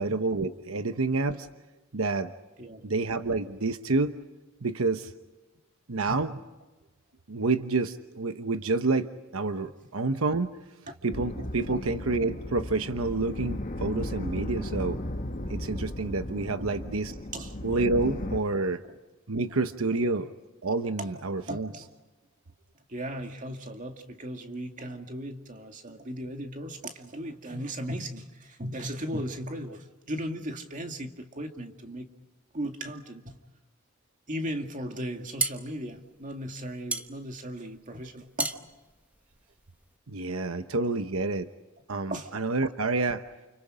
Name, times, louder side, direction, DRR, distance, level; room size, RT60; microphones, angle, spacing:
voice 1, 0.0-1.5 1.9-2.3 2.8-4.2 4.6-5.1 5.9-6.4 7.3-10.5 11.0-15.0 15.5-17.2 17.6-18.8 19.3-20.3 20.6-21.7 40.1-41.5 41.9-43.2, right 3 dB, 85° right, 1.0 m, -28 dB
sound 1, 11.1-18.4, left 1 dB, 40° left, 1.4 m, -35 dB
voice 2, 21.0-21.9 22.9-32.1 32.5-33.4 34.3-38.6 42.1-42.3, right 1 dB, 40° right, 2.2 m, -37 dB
sound 2, 35.0-40.0, right 3 dB, 5° right, 1.0 m, -35 dB
30.0 x 29.5 x 5.1 m
head